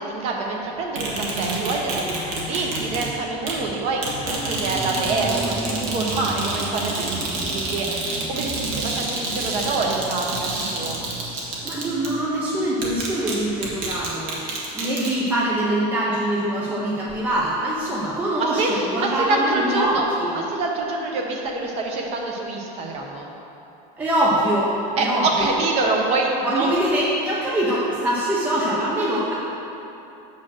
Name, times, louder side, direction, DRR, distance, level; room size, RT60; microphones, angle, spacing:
voice 1, 0.0-11.0 18.4-20.0 20.3-23.3 25.0-26.7, right 3 dB, 30° right, 0 dB, 0.8 m, -26 dB
sound 1, 1.0-3.1 3.5-3.6 4.0-12.2 12.8-13.3 13.6-15.1, right 2 dB, 55° right, 1.6 m, -28 dB
voice 2, 11.6-14.4 14.7-20.4 24.0-25.6 26.4-29.3, right 1 dB, 10° right, -6 dB, 0.5 m, -23 dB
7.6 x 4.4 x 6.1 m, 3.0 s
cardioid pair, 180°, 20 cm